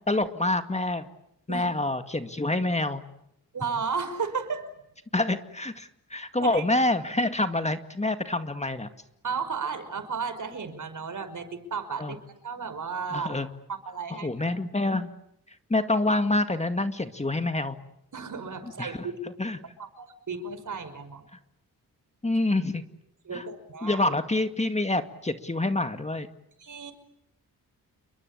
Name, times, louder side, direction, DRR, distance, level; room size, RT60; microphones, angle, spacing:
voice 1, 0.1-1.1 1.5-3.0 5.1-8.9 12.0-12.2 13.1-13.5 14.2-15.1 15.7-17.8 18.8-19.1 19.4-19.6 22.2-22.8 23.3-23.4 23.8-26.3, left 2 dB, 20° left, 9 dB, 2.1 m, -27 dB
voice 2, 3.5-4.7 6.4-6.6 9.2-12.2 12.4-13.4 13.7-14.3 18.1-19.1 19.8-21.2 23.2-24.1 26.6-26.9, right 5 dB, 60° right, 10 dB, 5.7 m, -33 dB
29.5 x 22.5 x 8.7 m, 0.77 s
cardioid pair, 60°, 36 cm